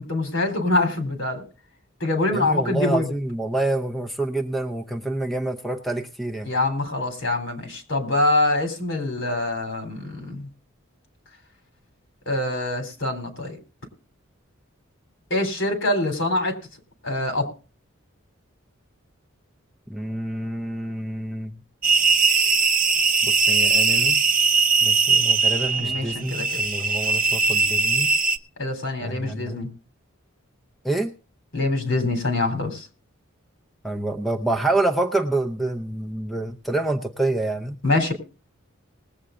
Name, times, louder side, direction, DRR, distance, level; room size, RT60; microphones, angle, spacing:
voice 1, 0.0-1.4 2.0-3.1 6.5-10.5 12.3-13.6 15.3-16.6 17.0-17.5 25.8-26.5 28.6-29.7 31.5-32.9 37.8-38.1, left 2 dB, 65° left, 5 dB, 3.5 m, -24 dB
voice 2, 2.3-6.5 19.9-21.5 23.2-24.2 24.8-28.1 29.0-29.6 30.8-31.1 33.8-37.8, right 2 dB, ahead, 4 dB, 0.7 m, -27 dB
sound 1, 21.8-28.4, right 4 dB, 40° right, 0.7 m, -20 dB
20.0 x 8.1 x 3.8 m, 0.35 s
head